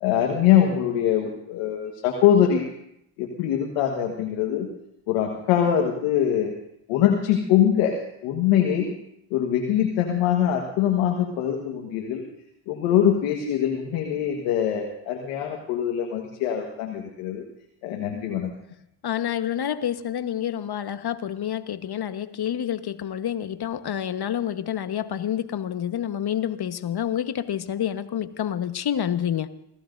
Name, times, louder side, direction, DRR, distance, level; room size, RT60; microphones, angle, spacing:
voice 1, 0.0-2.6 3.2-4.7 5.1-6.5 6.9-8.9 9.3-12.2 12.7-17.4 17.8-18.5, left 10 dB, 80° left, 2 dB, 1.6 m, -23 dB
voice 2, 19.0-29.5, left 10 dB, 50° left, 10 dB, 1.3 m, -28 dB
28.0 x 15.5 x 2.7 m, 0.77 s
hypercardioid pair, 45°, 48 cm